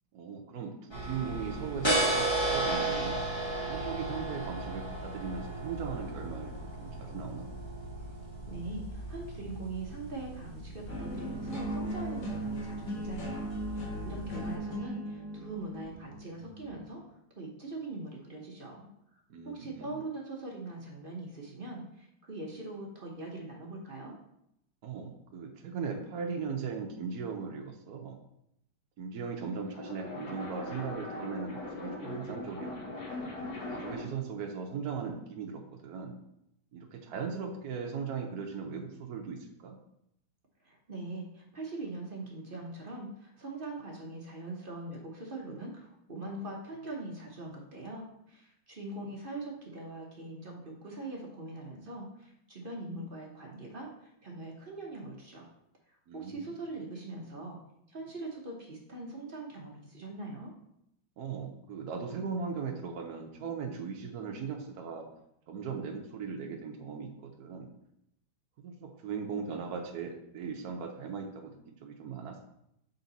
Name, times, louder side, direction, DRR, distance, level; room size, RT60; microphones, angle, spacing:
voice 1, 0.1-3.2 3.7-7.5 19.3-19.9 24.8-28.2 29.0-33.0 33.7-36.2 36.7-39.8 56.1-56.4 61.2-65.1 65.5-67.7 68.6-72.4, right 5 dB, 65° right, 1 dB, 1.1 m, -38 dB
sound 1, 0.9-14.5, right 2 dB, 15° left, 1.2 m, -35 dB
voice 2, 8.5-18.9 19.4-24.2 40.6-55.5 55.9-57.6 57.9-60.5, right 2 dB, 40° right, -1 dB, 0.8 m, -42 dB
sound 2, 10.9-16.9, right 1 dB, 75° left, 2.1 m, -38 dB
sound 3, 29.5-34.2, left 2 dB, 55° left, 1.5 m, -40 dB
6.4 x 4.1 x 4.0 m, 0.78 s
omnidirectional pair, 2.1 m